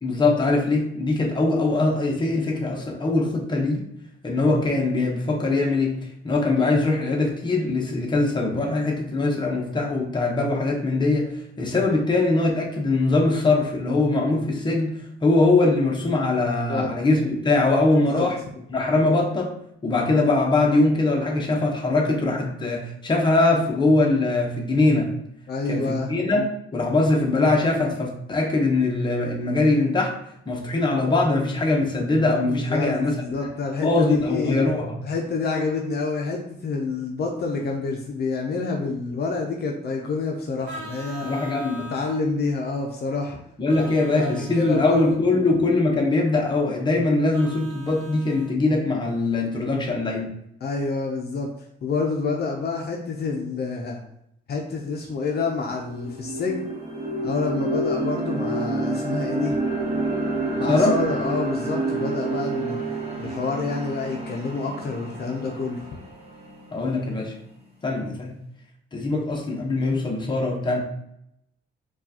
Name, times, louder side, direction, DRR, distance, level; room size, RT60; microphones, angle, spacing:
voice 1, 0.0-3.9 4.2-6.0 6.2-14.9 15.2-18.4 18.7-19.5 19.8-25.1 25.7-30.1 30.5-33.2 33.8-35.0 41.2-41.9 43.6-50.3 60.7-61.0 66.7-67.3 67.8-68.3 68.9-70.8, left 2 dB, 25° left, 0 dB, 0.9 m, -22 dB
voice 2, 25.5-26.1 32.7-32.9 33.2-34.6 35.0-41.3 41.9-43.4 43.8-43.9 44.2-45.0 45.3-45.5 50.6-51.5 51.8-54.0 54.5-56.7 57.2-59.5 60.5-62.8 63.2-65.8, left 3 dB, 55° left, 1 dB, 0.6 m, -28 dB
Vehicle horn car horn honking, 40.6-42.2 43.7-45.2 47.3-48.5, right 1 dB, 70° right, 0.9 m, -41 dB
sound 1, 54.9-55.0 55.4-67.5, right 2 dB, 30° right, 1.0 m, -29 dB
4.4 x 2.4 x 2.8 m, 0.75 s
cardioid pair, 90°, 20 cm